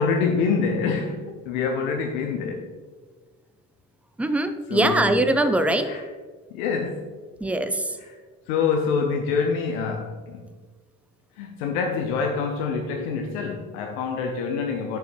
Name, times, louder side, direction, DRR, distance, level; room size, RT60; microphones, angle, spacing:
voice 1, 0.0-2.7 4.7-5.1 5.7-6.0 6.5-7.2 8.0-8.2 8.5-10.6 11.3-15.0, left 5 dB, 70° left, 4 dB, 0.8 m, -26 dB
voice 2, 4.2-5.9 7.4-8.0, right 1 dB, 5° right, 9 dB, 0.5 m, -22 dB
9.2 x 6.9 x 3.0 m, 1.4 s
figure-of-eight pair, 50°, 45 cm